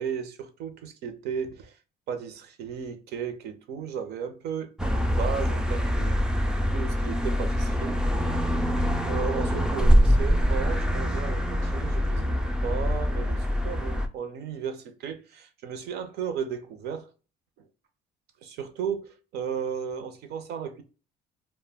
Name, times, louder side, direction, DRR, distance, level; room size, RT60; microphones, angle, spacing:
voice 1, 0.0-1.8 2.1-6.2 6.7-8.0 9.0-17.1 17.6-17.7 18.4-20.8, right 7 dB, 75° right, 0.6 m, -35 dB
sound 1, 4.8-14.1, equal, 5° right, 0.3 m, -24 dB
2.2 x 2.1 x 3.3 m
cardioid pair, 110°, 17 cm